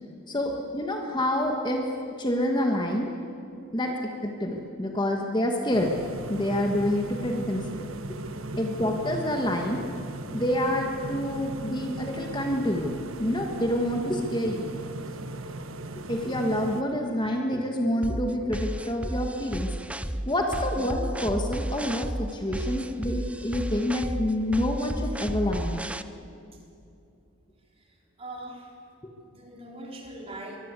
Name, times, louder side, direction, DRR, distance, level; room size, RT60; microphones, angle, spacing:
voice 1, 0.3-1.8 2.2-3.1 3.7-5.9 6.3-7.9 8.5-9.8 10.3-12.9 13.2-14.7 16.1-19.7 20.2-25.8, left 1 dB, 20° left, 2 dB, 1.7 m, -27 dB
sound 1, 5.7-16.8, right 2 dB, 80° right, 1.3 m, -37 dB
voice 2, 8.2-8.8 15.4-15.6 20.4-20.6 28.2-28.7 29.2-30.6, right 1 dB, 30° right, 0 dB, 4.0 m, -43 dB
sound 2, 18.0-26.0, right 1 dB, 5° right, 0.5 m, -33 dB
23.5 x 21.5 x 8.4 m, 2.6 s
head